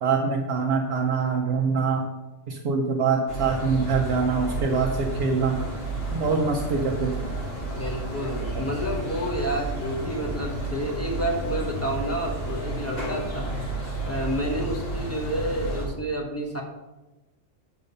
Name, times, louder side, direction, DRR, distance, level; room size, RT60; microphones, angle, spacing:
voice 1, 0.0-2.1 2.5-5.6 6.1-7.3 8.5-8.6, right 5 dB, 60° right, 2 dB, 0.9 m, -24 dB
sound 1, 3.3-15.9, right 1 dB, 50° left, 2.6 m, -31 dB
voice 2, 7.7-13.5 14.0-16.6, right 1 dB, 10° left, 0 dB, 1.1 m, -29 dB
7.2 x 5.2 x 5.5 m, 1.1 s
omnidirectional pair, 1.3 m